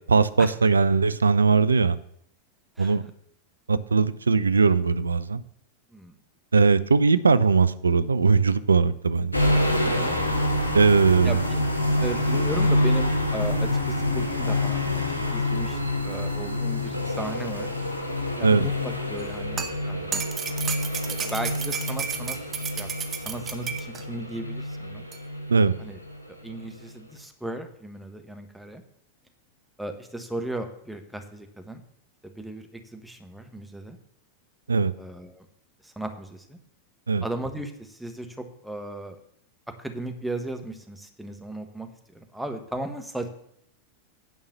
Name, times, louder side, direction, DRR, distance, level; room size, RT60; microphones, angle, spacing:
voice 1, 0.1-2.0 2.8-3.1 3.7-5.4 6.5-9.3 10.7-11.4 18.4-18.7 25.5-25.7 34.7-34.9 37.1-37.2, right 4 dB, 75° right, 15 dB, 0.5 m, -20 dB
voice 2, 2.8-3.1 5.9-6.1 9.8-10.2 11.2-11.6 12.0-14.8 15.3-17.7 18.4-20.2 21.1-22.9 23.2-25.0 25.8-26.0 26.4-28.8 29.8-31.8 32.2-34.0 35.0-35.5 35.8-36.6 37.2-39.2 39.8-41.9 42.1-43.3, right 1 dB, ahead, 5 dB, 1.3 m, -36 dB
sound 1, 9.3-26.2 26.5-26.7, left 1 dB, 85° left, 1.5 m, -27 dB
sound 2, 19.2-24.0 25.1-25.2, right 7 dB, 25° right, 1.0 m, -33 dB
9.3 x 5.5 x 6.7 m, 0.68 s
figure-of-eight pair, 90°, 0 cm